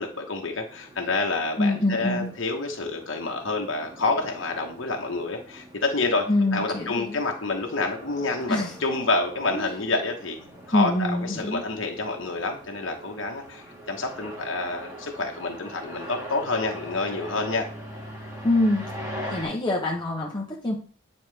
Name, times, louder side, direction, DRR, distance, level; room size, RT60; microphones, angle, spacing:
voice 1, 0.0-10.4 10.7-17.7, left 3 dB, 60° left, 1 dB, 1.1 m, -28 dB
sound 1, 0.7-19.5, equal, 15° right, 1.5 m, -42 dB
voice 2, 1.6-2.3 6.3-7.2 8.5-8.7 9.5-9.7 10.7-11.6 18.4-18.8 19.3-20.8, left 1 dB, 20° left, -3 dB, 1.0 m, -25 dB
9.5 x 4.3 x 3.4 m, 0.41 s
head